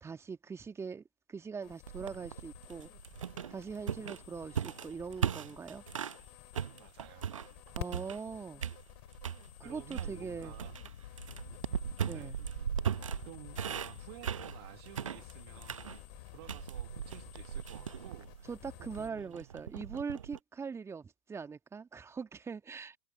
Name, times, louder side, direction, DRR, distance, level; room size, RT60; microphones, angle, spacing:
voice 1, 0.0-2.9 3.5-5.8 7.8-8.6 9.6-10.5 12.0-12.4 18.5-23.0, right 5 dB, 15° right, 2.3 m, -42 dB
sound 1, 1.6-19.1, left 35 dB, 50° left, 2.8 m, -53 dB
sound 2, 1.9-6.2 6.5-8.3 8.6-9.4 9.9-20.4, right 8 dB, 70° right, 1.1 m, -38 dB
voice 2, 6.8-7.4 9.6-10.8 12.1-12.4 13.2-18.5 18.8-19.5, right 22 dB, 50° right, 1.8 m, -53 dB
Wind, 8.8-15.1, left 11 dB, 65° left, 1.2 m, -51 dB
figure-of-eight pair, 90°, 17 cm